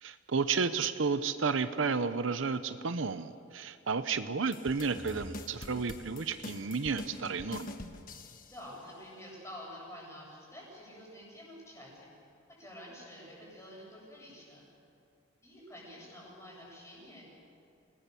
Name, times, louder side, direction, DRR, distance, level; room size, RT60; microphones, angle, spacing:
voice 1, 0.0-7.7, right 5 dB, 65° right, 11 dB, 0.7 m, -32 dB
sound 1, 4.5-8.7, left 2 dB, 40° left, 1.3 m, -45 dB
sound 2, 5.0-7.2, equal, 25° right, 2.6 m, -51 dB
voice 2, 8.4-12.1 12.6-14.7 15.4-17.3, equal, 15° left, -4 dB, 7.9 m, -49 dB
28.5 x 19.0 x 7.1 m, 2.4 s
head